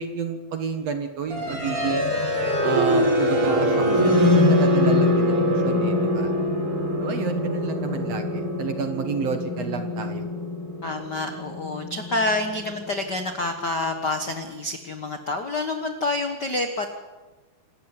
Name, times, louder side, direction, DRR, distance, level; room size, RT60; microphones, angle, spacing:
voice 1, 0.0-2.1 2.6-6.3 7.0-10.3, right 6 dB, 55° right, 7 dB, 2.1 m, -30 dB
sound 1, 1.3-13.2, left 1 dB, 85° right, 8.8 m, -23 dB
voice 2, 10.8-16.9, left 2 dB, 65° left, 6 dB, 1.0 m, -28 dB
27.5 x 14.0 x 9.8 m, 1.2 s
omnidirectional pair, 4.4 m